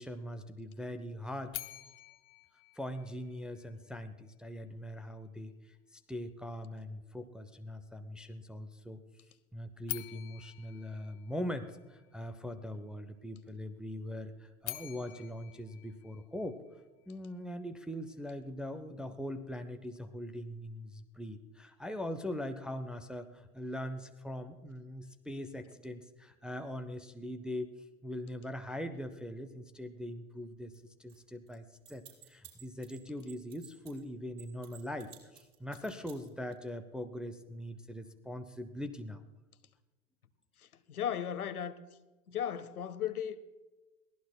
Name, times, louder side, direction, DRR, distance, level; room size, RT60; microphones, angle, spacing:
voice 1, 0.0-1.6 2.8-5.7 6.1-9.0 9.5-16.6 17.1-27.7 28.0-30.7 31.0-39.2, left 1 dB, ahead, 0.4 m, -41 dB
sound 1, 1.5-3.6 9.8-12.0 14.4-16.8, left 18 dB, 55° left, 0.9 m, -46 dB
sound 2, 30.7-30.8 31.1-31.2 31.5-34.0 34.4-36.5, right 11 dB, 50° right, 5.7 m, -54 dB
voice 2, 40.9-41.8 42.3-43.4, left 9 dB, 85° left, 0.9 m, -35 dB
23.0 x 16.0 x 2.2 m
hypercardioid pair, 100°, 43 cm